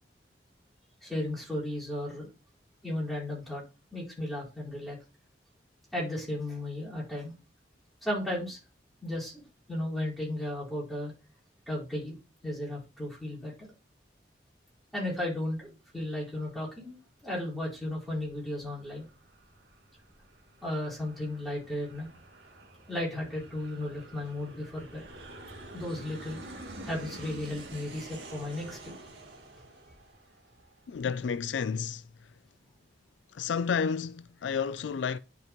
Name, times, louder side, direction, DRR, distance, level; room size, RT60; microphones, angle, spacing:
voice 1, 1.0-2.3 2.8-3.6 3.9-5.0 5.9-7.3 8.0-8.6 9.0-9.4 9.7-11.1 11.7-12.1 12.4-13.7 14.9-16.9 17.2-19.0 20.6-22.1 22.9-25.0 25.7-26.4 26.8-28.9, left 1 dB, ahead, 4.5 m, -34 dB
Aircraft, 17.7-31.0, right 1 dB, 75° right, 2.1 m, -48 dB
voice 2, 30.9-32.3 33.3-35.2, left 6 dB, 85° left, 0.4 m, -31 dB
11.0 x 5.3 x 3.0 m
head